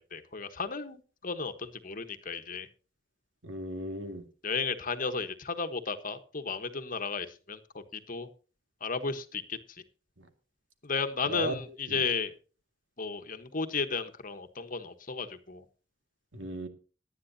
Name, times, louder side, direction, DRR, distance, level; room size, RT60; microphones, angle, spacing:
voice 1, 0.0-2.7 4.4-8.3 8.8-9.8 10.8-12.3 13.0-15.6, left 4 dB, 45° left, 8 dB, 1.3 m, -34 dB
voice 2, 3.4-4.2 10.2-10.3 11.3-11.5 11.9-12.0 16.3-16.7, equal, 80° right, 6 dB, 2.1 m, -36 dB
18.5 x 11.0 x 2.8 m, 0.36 s
head